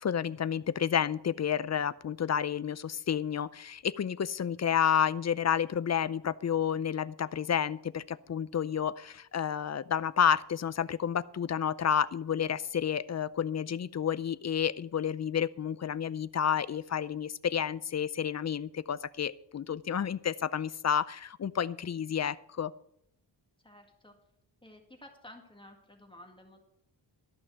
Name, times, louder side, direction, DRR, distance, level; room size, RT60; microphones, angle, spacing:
voice 1, 0.0-22.7, left 8 dB, 40° left, 17 dB, 0.5 m, -30 dB
voice 2, 23.6-24.1 24.6-26.6, left 1 dB, 10° left, 2 dB, 1.9 m, -53 dB
13.0 x 6.0 x 7.9 m, 0.72 s
wide cardioid pair, 110°, 43 cm